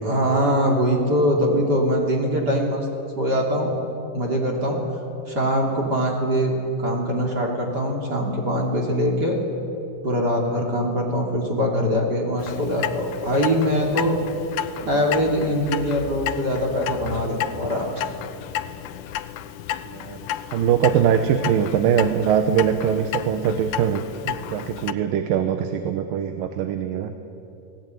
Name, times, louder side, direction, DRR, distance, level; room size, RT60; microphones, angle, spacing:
voice 1, 0.0-2.9 3.2-3.7 4.1-4.8 5.3-6.5 6.8-9.4 10.0-14.2 14.8-18.1, equal, 30° right, 0 dB, 3.5 m, -22 dB
Clock, 12.4-24.9, left 11 dB, 75° left, 2.3 m, -32 dB
voice 2, 19.9-20.2 20.5-27.1, right 8 dB, 85° right, 8 dB, 2.7 m, -22 dB
29.0 x 18.0 x 9.4 m, 2.8 s
omnidirectional pair, 3.9 m